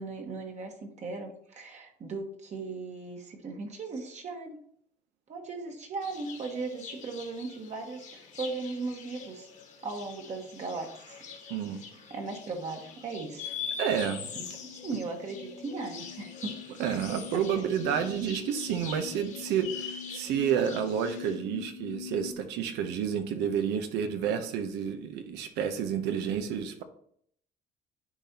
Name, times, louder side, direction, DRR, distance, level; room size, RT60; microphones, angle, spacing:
voice 1, 0.0-4.6 5.3-9.5 9.8-11.2 12.1-13.6 14.3-16.5 17.5-17.7 26.3-26.5, right 3 dB, 45° right, 2 dB, 1.3 m, -38 dB
sound 1, 6.0-21.4, left 6 dB, 45° left, 1.3 m, -44 dB
voice 2, 11.5-11.8 13.8-14.3 16.8-26.8, right 8 dB, 90° right, 8 dB, 0.8 m, -30 dB
sound 2, 12.9-22.3, left 6 dB, 70° left, 0.9 m, -45 dB
9.8 x 4.1 x 2.9 m, 0.64 s
cardioid pair, 110°, 17 cm